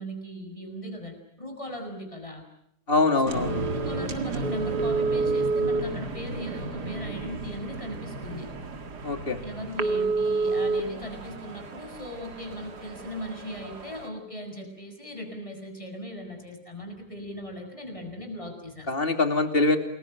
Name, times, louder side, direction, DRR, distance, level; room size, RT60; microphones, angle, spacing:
voice 1, 0.0-2.4 3.2-3.3 3.7-8.5 9.4-18.9, equal, 20° left, 3 dB, 7.0 m, -38 dB
voice 2, 2.9-3.6 9.0-9.4 18.9-19.8, left 3 dB, 35° left, 6 dB, 3.0 m, -23 dB
sound 1, 3.3-14.1, right 3 dB, 85° right, 2.5 m, -30 dB
29.0 x 21.5 x 9.3 m, 0.70 s
omnidirectional pair, 1.7 m